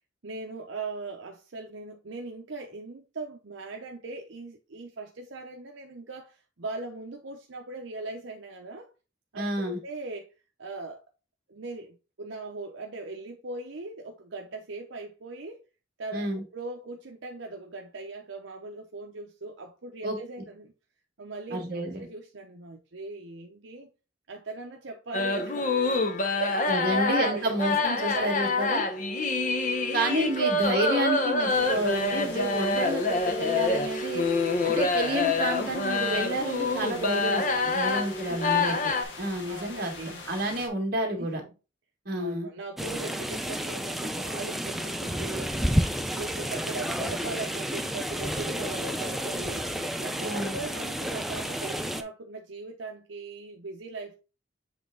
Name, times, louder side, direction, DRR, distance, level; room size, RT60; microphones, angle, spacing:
voice 1, 0.2-8.9 9.3-10.3 10.6-11.0 11.5-15.6 16.0-20.7 21.2-23.9 24.3-25.9 26.4-27.4 28.0-28.2 28.6-29.0 30.4-30.7 38.3-38.5 39.5-40.2 41.2-41.5 42.2-54.2, right 3 dB, 75° right, 0.8 m, -40 dB
voice 2, 9.4-9.8 16.1-16.4 20.0-20.2 21.5-22.1 26.7-28.8 29.9-34.2 34.6-38.9 39.2-41.4 42.1-42.5 50.2-50.6, right 1 dB, 50° right, 1.8 m, -30 dB
sound 1, 25.1-39.0, left 3 dB, 40° left, 0.9 m, -26 dB
sound 2, 31.5-40.7, left 3 dB, 65° left, 1.6 m, -43 dB
sound 3, 42.8-52.0, equal, ahead, 0.4 m, -31 dB
7.4 x 3.4 x 3.8 m
head